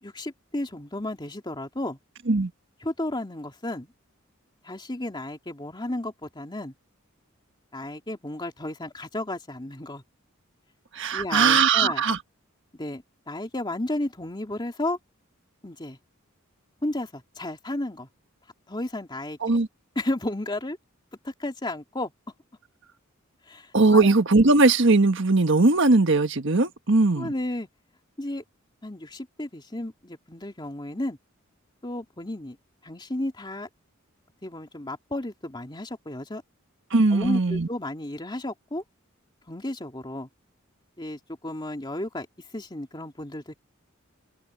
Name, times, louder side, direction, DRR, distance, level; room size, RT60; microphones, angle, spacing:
voice 1, 0.0-2.0 2.8-3.9 4.6-6.7 7.7-10.0 11.1-12.0 12.7-15.0 15.6-16.0 16.8-18.1 18.7-19.6 20.0-20.8 21.2-22.1 23.5-24.1 27.2-27.7 28.2-28.4 28.8-31.2 31.8-32.6 32.8-33.7 34.4-36.4 37.1-38.8 39.5-40.3 41.0-42.3 42.5-43.5, left 1 dB, 20° left, 2.7 m, -33 dB
voice 2, 10.9-12.2 19.4-19.7 23.7-27.3 36.9-37.7, right 3 dB, 65° right, 1.5 m, -19 dB
open air
head